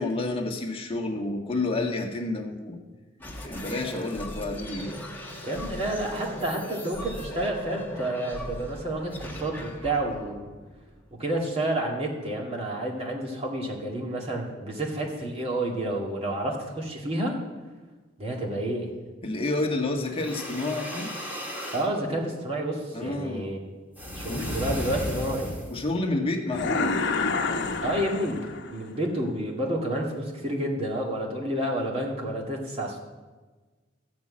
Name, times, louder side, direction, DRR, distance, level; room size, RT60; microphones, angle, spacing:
voice 1, 0.0-2.8 3.4-5.0 19.2-21.1 22.9-23.5 24.3-24.6 25.7-26.9, left 2 dB, 30° left, 2 dB, 1.6 m, -29 dB
sound 1, 3.2-11.4, left 1 dB, 10° left, 1.6 m, -39 dB
voice 2, 5.4-10.4 11.1-17.4 18.2-18.9 21.7-23.6 24.2-25.6 27.8-33.0, right 1 dB, 30° right, -2 dB, 2.4 m, -30 dB
sound 2, 20.1-21.9 24.0-25.8, left 1 dB, 10° right, 2.4 m, -34 dB
sound 3, 26.5-28.8, left 4 dB, 60° left, 1.0 m, -28 dB
14.0 x 6.0 x 8.6 m, 1.3 s
head